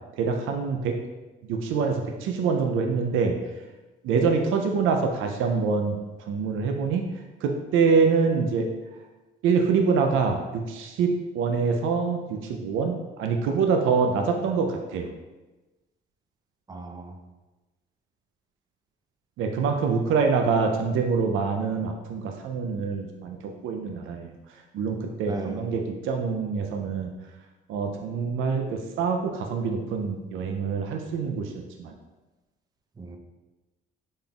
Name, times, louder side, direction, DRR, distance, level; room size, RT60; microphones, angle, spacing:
voice 1, 0.2-1.0 1.5-3.4 4.0-6.0 6.3-7.0 7.4-8.7 9.4-15.1 19.4-23.4 23.6-24.3 24.7-27.1 27.7-31.5 31.8-31.9, right 5 dB, 85° right, 3 dB, 0.4 m, -25 dB
voice 2, 16.7-17.2 25.3-25.8 33.0-33.2, right 3 dB, 20° right, 4 dB, 0.5 m, -36 dB
3.9 x 3.6 x 2.3 m, 1.1 s
cardioid pair, 90°, 20 cm